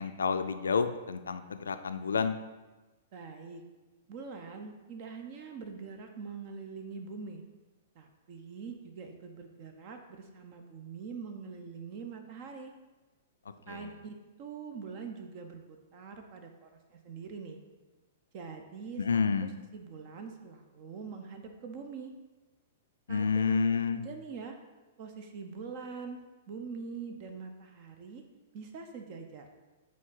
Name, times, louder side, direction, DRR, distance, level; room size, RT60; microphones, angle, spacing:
voice 1, 0.0-2.4 13.7-13.9 19.0-19.5 23.1-24.0, left 5 dB, 70° left, 10 dB, 0.4 m, -29 dB
voice 2, 3.1-3.6 4.1-7.4 7.9-12.7 13.7-17.6 18.3-19.3 19.7-22.1 23.1-24.6 25.0-28.2 28.5-29.5, right 5 dB, 40° right, 5 dB, 0.6 m, -44 dB
8.4 x 3.7 x 3.9 m, 1.2 s
figure-of-eight pair, 105°, 0 cm